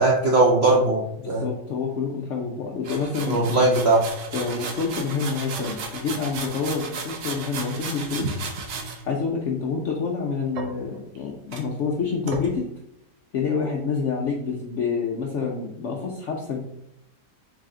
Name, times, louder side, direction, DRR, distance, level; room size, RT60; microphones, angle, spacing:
voice 1, 0.0-1.5 3.3-4.0, right 2 dB, 65° right, -3 dB, 0.6 m, -19 dB
voice 2, 1.2-3.6 4.3-8.4 9.0-12.7 13.3-16.6, left 5 dB, 70° left, -1 dB, 0.7 m, -27 dB
sound 1, 2.8-9.0 10.5-11.2 11.5-11.6 12.3-12.5, right 4 dB, 85° right, 1.4 m, -34 dB
4.1 x 3.3 x 3.7 m, 0.80 s
omnidirectional pair, 1.9 m